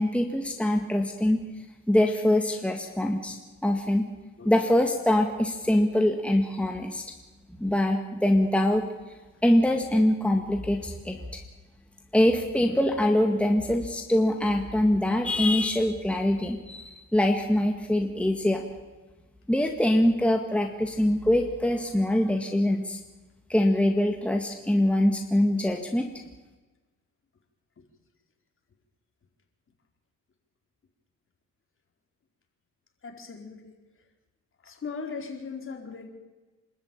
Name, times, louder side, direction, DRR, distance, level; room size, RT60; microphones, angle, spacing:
voice 1, 0.0-1.4 1.9-3.4 3.6-4.1 4.5-7.0 7.6-8.8 9.4-11.4 12.1-18.6 19.5-23.0 23.5-26.1, left 1 dB, 5° left, 3 dB, 1.9 m, -24 dB
voice 2, 33.0-33.7 34.6-36.1, left 5 dB, 45° left, 3 dB, 4.3 m, -38 dB
26.5 x 13.0 x 9.1 m, 1.2 s
cardioid pair, 90°, 30 cm